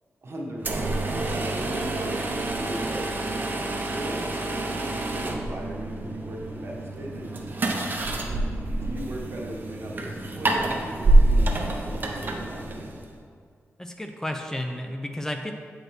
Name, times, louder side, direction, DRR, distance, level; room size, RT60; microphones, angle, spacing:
voice 1, 0.2-3.1 3.9-7.4 8.2-8.5 8.8-13.0, right 1 dB, 60° right, -2 dB, 1.2 m, -38 dB
sound 1, 0.6-13.1, right 2 dB, 45° right, 0.8 m, -26 dB
voice 2, 13.8-15.5, left 1 dB, 10° left, 4 dB, 0.4 m, -32 dB
8.6 x 5.0 x 3.2 m, 2.2 s
wide cardioid pair, 90°, 5 cm